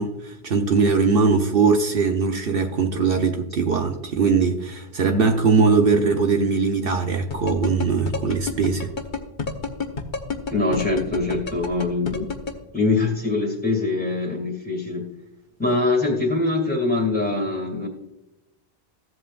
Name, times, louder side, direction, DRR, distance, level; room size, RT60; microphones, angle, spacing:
voice 1, 0.0-8.9, right 4 dB, 65° right, 0.9 m, -21 dB
sound 1, 7.3-12.5, left 5 dB, 50° left, 1.2 m, -28 dB
voice 2, 10.5-12.3 12.7-15.1 15.6-17.9, left 3 dB, 10° left, 2.1 m, -23 dB
15.0 x 7.9 x 2.4 m
omnidirectional pair, 1.1 m